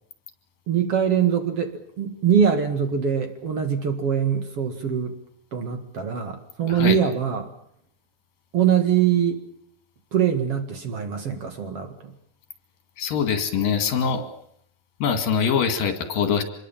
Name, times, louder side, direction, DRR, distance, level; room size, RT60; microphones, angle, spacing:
voice 1, 0.7-5.1 5.5-7.5 8.5-9.4 10.1-12.1, right 8 dB, 50° right, 6 dB, 2.5 m, -23 dB
voice 2, 13.0-14.2 15.0-16.4, left 6 dB, 80° left, 7 dB, 3.9 m, -23 dB
26.0 x 21.5 x 7.4 m, 0.68 s
omnidirectional pair, 4.0 m